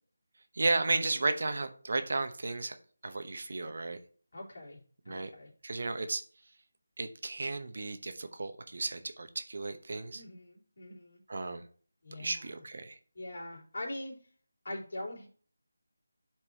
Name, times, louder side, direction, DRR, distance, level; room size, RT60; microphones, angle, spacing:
voice 1, 0.5-2.8 3.0-4.0 5.1-5.3 5.6-6.2 7.0-10.2 11.3-11.6 12.2-13.0, right 3 dB, 55° right, 8 dB, 0.9 m, -33 dB
voice 2, 4.3-5.5 10.1-11.2 12.0-12.6 13.1-14.1 14.6-15.3, left 1 dB, 60° left, -3 dB, 3.3 m, -43 dB
11.0 x 4.6 x 2.8 m, 0.43 s
figure-of-eight pair, 165°, 0 cm